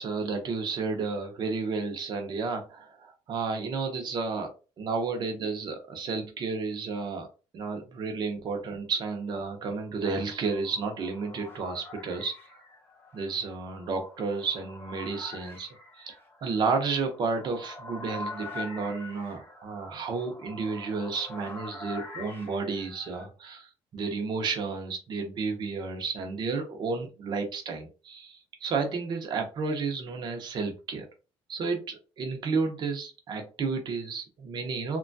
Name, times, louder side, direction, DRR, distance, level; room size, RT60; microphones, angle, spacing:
voice 1, 0.0-7.3 7.5-12.3 13.1-31.1 31.5-35.0, right 4 dB, 45° right, 4 dB, 0.7 m, -32 dB
sound 1, 9.8-23.3, left 2 dB, 20° left, 0.8 m, -44 dB
3.0 x 2.3 x 2.6 m, 0.33 s
cardioid pair, 140°, 11 cm